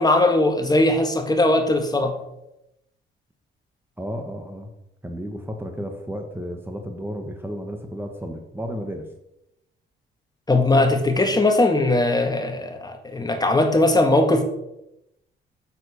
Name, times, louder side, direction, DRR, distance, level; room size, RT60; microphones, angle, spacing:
voice 1, 0.0-2.2 10.5-14.4, left 2 dB, 20° left, 5 dB, 1.8 m, -19 dB
voice 2, 4.0-4.7 5.0-9.1, equal, 10° right, 5 dB, 1.3 m, -33 dB
7.7 x 7.2 x 6.3 m, 0.84 s
cardioid pair, 90°, 20 cm